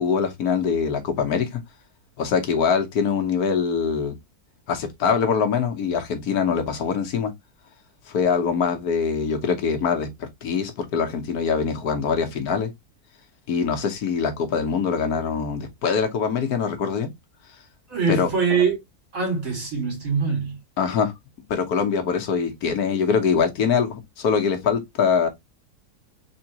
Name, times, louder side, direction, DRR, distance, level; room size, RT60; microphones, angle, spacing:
voice 1, 0.0-1.6 2.2-4.2 4.7-7.3 8.1-12.7 13.5-17.1 18.1-18.3 20.8-21.1 21.5-25.3, left 6 dB, 75° left, 1.4 m, -23 dB
voice 2, 17.9-18.8 19.1-20.6, right 5 dB, 60° right, 2.6 m, -23 dB
3.8 x 3.5 x 2.8 m
omnidirectional pair, 1.7 m